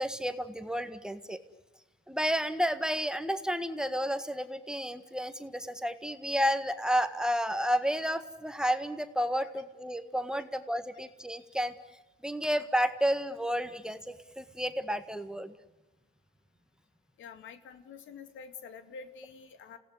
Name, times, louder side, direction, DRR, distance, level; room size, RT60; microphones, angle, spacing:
voice 1, 0.0-1.4 2.1-11.7 12.2-15.5, equal, 5° right, 10 dB, 1.6 m, -31 dB
voice 2, 17.2-19.8, left 5 dB, 75° left, 9 dB, 2.5 m, -47 dB
29.5 x 17.5 x 9.8 m, 1.1 s
cardioid pair, 90°, 20 cm